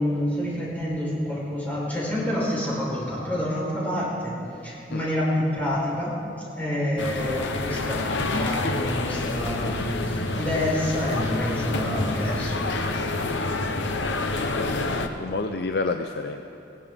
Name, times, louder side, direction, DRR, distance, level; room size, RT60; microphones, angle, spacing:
voice 1, 0.0-4.4 4.6-13.7, left 1 dB, 10° left, -7 dB, 4.2 m, -28 dB
sound 1, 7.0-15.1, left 2 dB, 80° left, 0.9 m, -28 dB
voice 2, 14.2-14.9 15.2-16.4, left 3 dB, 60° left, 6 dB, 0.5 m, -30 dB
18.0 x 17.0 x 3.6 m, 2.8 s
head